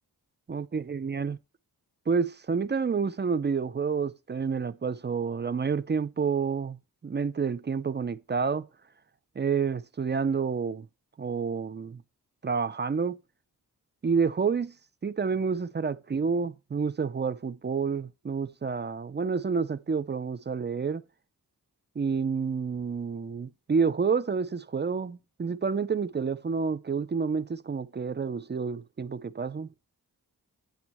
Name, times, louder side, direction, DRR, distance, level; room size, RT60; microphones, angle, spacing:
voice 1, 0.5-1.4 2.1-8.7 9.4-10.9 11.2-12.0 12.4-13.2 14.0-14.7 15.0-21.0 22.0-29.7, right 5 dB, 30° right, 0.4 m, -29 dB
8.3 x 2.8 x 6.2 m
cardioid pair, 45°, 38 cm